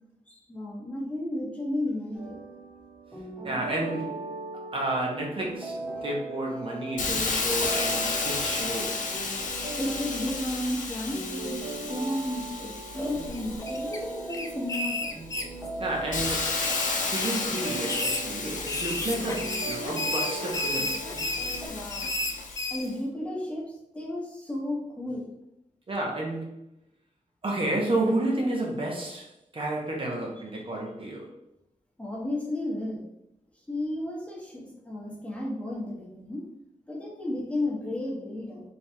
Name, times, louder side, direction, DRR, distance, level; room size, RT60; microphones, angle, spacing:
voice 1, 0.3-2.4 5.9-6.1 6.5-7.8 9.8-15.2 21.7-22.1 22.5-25.3 30.5-30.6 32.0-33.0 33.7-36.4 36.9-38.6, left 1 dB, 10° left, -4 dB, 0.9 m, -33 dB
sound 1, 2.1-21.7, right 3 dB, 15° right, 1.1 m, -39 dB
voice 2, 3.4-4.3 4.7-9.1 15.8-16.5 17.0-21.0 25.9-26.6 27.4-31.3, right 1 dB, 45° right, -1 dB, 0.7 m, -31 dB
Hiss, 7.0-14.5 15.1-22.8, left 4 dB, 80° left, 0.6 m, -33 dB
sound 2, 13.3-14.0 14.3-15.9 16.2-17.4 17.8-22.9, left 2 dB, 25° left, 0.4 m, -32 dB
3.4 x 2.3 x 4.3 m, 0.84 s
wide cardioid pair, 135°, 13 cm